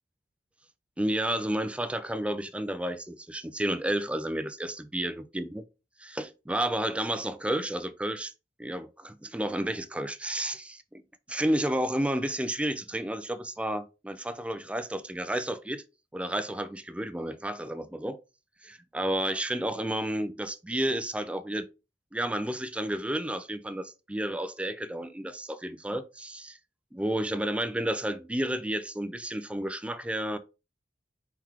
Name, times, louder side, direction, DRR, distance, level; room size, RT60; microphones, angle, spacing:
voice 1, 1.0-5.6 6.0-8.3 8.6-11.0 11.3-15.8 16.1-18.2 18.6-21.7 22.1-26.6 26.9-30.4, right 1 dB, 5° right, 0.4 m, -31 dB
4.6 x 3.8 x 2.9 m
head